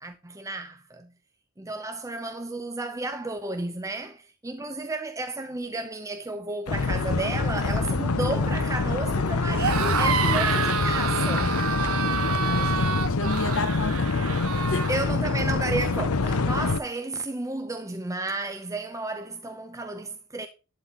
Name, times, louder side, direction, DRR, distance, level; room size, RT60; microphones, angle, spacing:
voice 1, 0.0-1.1 1.6-11.7 14.9-20.5, right 2 dB, 15° right, 0.7 m, -32 dB
sound 1, 6.7-16.8, left 3 dB, 80° left, 0.8 m, -25 dB
sound 2, 9.5-15.0, right 6 dB, 70° right, 1.1 m, -28 dB
voice 2, 12.4-14.4 14.7-14.9, left 3 dB, 60° left, 1.0 m, -32 dB
11.5 x 4.2 x 5.5 m
head